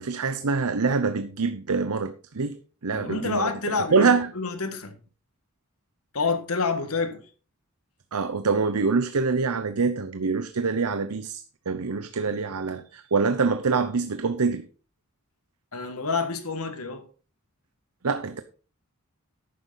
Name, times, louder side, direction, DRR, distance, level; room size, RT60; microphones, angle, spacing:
voice 1, 0.0-2.6 2.8-3.5 3.9-4.3 8.1-14.7 18.0-18.4, right 4 dB, 90° right, 0.8 m, -25 dB
voice 2, 2.9-4.9 6.1-7.2 15.7-17.0, left 4 dB, 80° left, 1.7 m, -28 dB
11.5 x 9.5 x 3.9 m
head